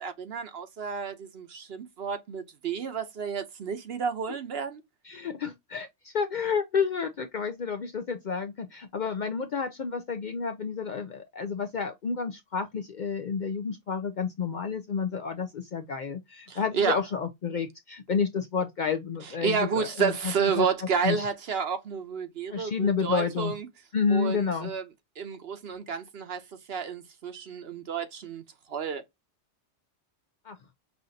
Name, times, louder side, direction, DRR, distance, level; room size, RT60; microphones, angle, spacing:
voice 1, 0.0-4.8 16.5-17.0 19.2-23.7 24.1-24.8 25.2-26.4 26.7-28.4 28.7-29.0, right 6 dB, 60° right, 1.0 m, -31 dB
voice 2, 5.0-21.3 22.5-23.5 23.9-24.7 30.5-30.6, left 6 dB, 55° left, 0.5 m, -30 dB
5.6 x 2.5 x 2.7 m
omnidirectional pair, 1.2 m